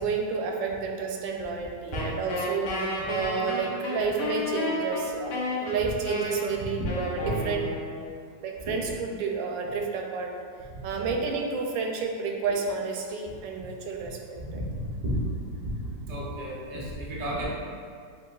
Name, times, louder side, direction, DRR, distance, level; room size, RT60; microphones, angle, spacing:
voice 1, 0.0-5.3 5.6-7.7 8.4-10.3 10.8-14.2 14.5-14.6, right 5 dB, 85° right, 1 dB, 1.3 m, -30 dB
Wind instrument woodwind instrument, 1.9-8.2, left 1 dB, 70° left, 1.4 m, -32 dB
voice 2, 14.5-15.7 16.0-17.5, equal, 70° right, -5 dB, 0.3 m, -32 dB
7.7 x 2.7 x 2.3 m, 2.2 s
omnidirectional pair, 2.0 m